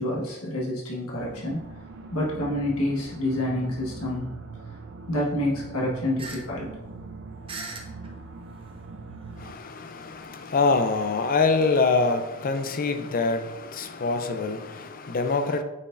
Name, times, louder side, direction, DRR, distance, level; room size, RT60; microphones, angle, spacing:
voice 1, 0.0-1.7 2.1-4.3 4.7-4.8 5.1-6.8, left 1 dB, 80° left, -3 dB, 1.4 m, -28 dB
sound 1, 1.2-9.5, right 4 dB, 55° right, 0.5 m, -42 dB
sound 2, 6.2-6.4 6.7-6.8 7.5-8.1 9.0-9.1 10.0-11.8, right 3 dB, 25° right, 0.8 m, -39 dB
voice 2, 9.4-15.6, left 4 dB, 40° left, 8 dB, 0.5 m, -25 dB
8.5 x 4.4 x 2.5 m, 1.0 s
head